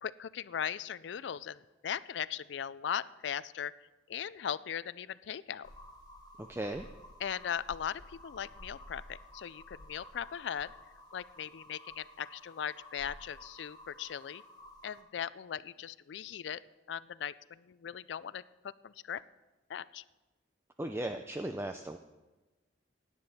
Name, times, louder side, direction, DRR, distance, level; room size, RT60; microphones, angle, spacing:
voice 1, 0.0-3.7 4.1-5.7 7.2-10.7 11.1-14.4 14.8-16.6 16.9-19.2 19.7-20.0, left 8 dB, 75° left, 18 dB, 0.4 m, -39 dB
sound 1, 5.6-15.0, left 1 dB, 25° left, 1.6 m, -53 dB
voice 2, 6.4-6.9 20.8-22.0, right 1 dB, 15° right, 7 dB, 0.4 m, -37 dB
17.0 x 9.8 x 4.2 m, 1.2 s
head